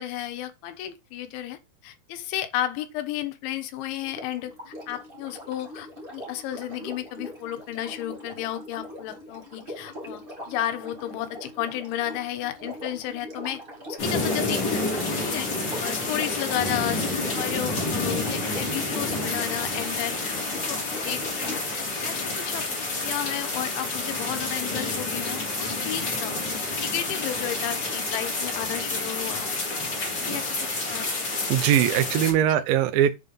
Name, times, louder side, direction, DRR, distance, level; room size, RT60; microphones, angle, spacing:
voice 1, 0.0-10.2 10.5-13.6 13.9-14.8 15.1-15.5 15.8-26.4 26.8-29.5 30.1-30.5 30.9-31.1 32.2-32.6, left 12 dB, 80° left, 3.5 m, -33 dB
Sink (filling or washing), 4.0-21.8 23.0-23.1, left 1 dB, 60° right, 0.5 m, -41 dB
sound 1, 14.0-32.3, left 2 dB, 25° left, 3.4 m, -29 dB
voice 2, 31.5-33.2, right 10 dB, 85° right, 2.0 m, -21 dB
8.1 x 5.4 x 5.4 m
omnidirectional pair, 5.3 m